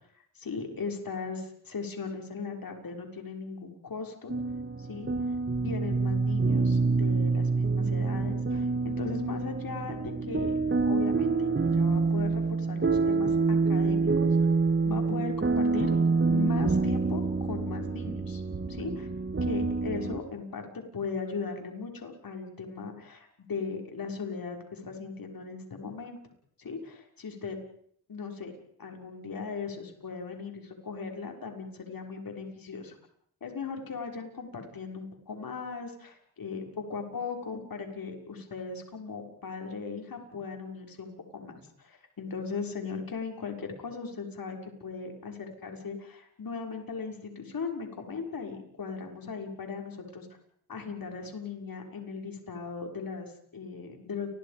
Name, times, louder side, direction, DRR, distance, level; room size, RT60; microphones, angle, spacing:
voice 1, 0.3-4.3 4.8-10.6 10.9-14.3 14.8-16.0 16.3-18.4 18.7-19.1 19.4-26.2 26.6-27.6 28.1-28.5 28.8-33.0 33.4-41.5 41.8-50.3 50.7-54.3, left 5 dB, 55° left, 3 dB, 6.4 m, -38 dB
sound 1, 4.3-20.2, right 4 dB, 30° right, 2.0 m, -27 dB
30.0 x 23.0 x 5.4 m, 0.65 s
supercardioid pair, 45°, 41 cm